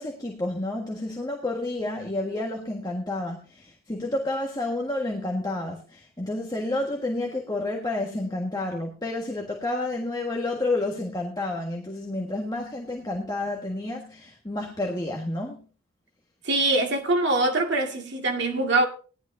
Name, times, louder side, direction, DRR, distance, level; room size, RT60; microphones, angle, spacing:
voice 1, 0.0-15.6, left 2 dB, 20° left, 1.6 m, -30 dB
voice 2, 16.5-18.9, right 2 dB, 55° right, 2.1 m, -23 dB
17.5 x 11.5 x 2.7 m
head